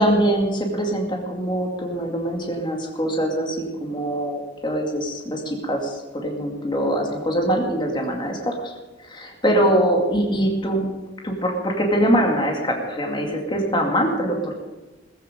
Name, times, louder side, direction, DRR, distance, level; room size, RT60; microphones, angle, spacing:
voice 1, 0.0-8.7 9.0-10.9 11.2-14.5, equal, 25° left, 1 dB, 2.3 m, -23 dB
17.0 x 15.0 x 5.2 m, 1.2 s
head